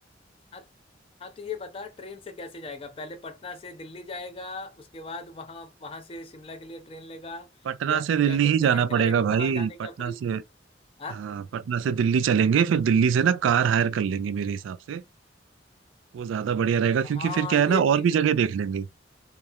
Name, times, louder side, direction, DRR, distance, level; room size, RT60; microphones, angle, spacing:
voice 1, 1.2-7.5 7.9-10.2 11.0-11.2 17.0-18.2, left 3 dB, 30° left, 0.4 m, -39 dB
voice 2, 7.7-10.4 11.2-15.0 16.1-18.9, right 7 dB, 90° right, 0.3 m, -23 dB
2.9 x 2.0 x 2.2 m
head